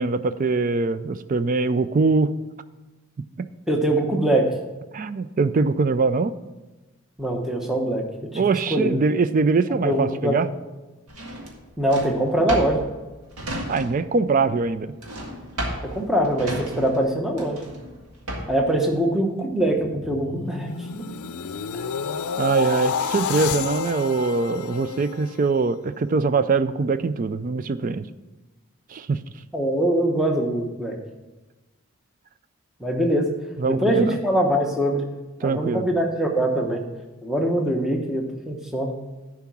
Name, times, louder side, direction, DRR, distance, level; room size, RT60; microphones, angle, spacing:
voice 1, 0.0-2.3 3.4-3.5 4.9-6.4 8.3-10.5 13.7-14.9 22.4-28.0 28.9-29.2 33.6-34.2 35.4-35.9, right 4 dB, 35° right, 13 dB, 0.3 m, -22 dB
voice 2, 3.7-4.5 7.2-8.3 8.7-8.9 9.8-10.4 11.8-12.8 15.8-17.6 18.5-21.0 29.5-30.9 32.8-33.3 33.7-35.1 35.4-36.8 37.2-38.9, right 1 dB, ahead, 1 dB, 0.9 m, -23 dB
Drawer open or close, 11.1-14.2 14.4-18.7, right 1 dB, 90° right, 1.9 m, -33 dB
sound 1, 19.5-25.8 26.2-26.5, left 6 dB, 80° left, 0.5 m, -30 dB
10.5 x 4.7 x 6.1 m, 1.1 s
head